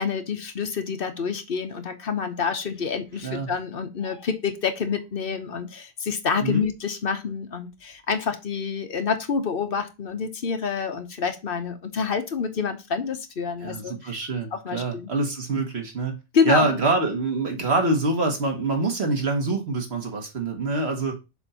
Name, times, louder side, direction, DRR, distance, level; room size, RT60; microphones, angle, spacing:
voice 1, 0.0-14.1 14.5-15.1 16.3-16.7, left 6 dB, 65° left, 1.1 m, -27 dB
voice 2, 13.6-16.2 16.4-21.2, right 3 dB, 90° right, 1.8 m, -25 dB
6.9 x 2.7 x 5.6 m
omnidirectional pair, 1.0 m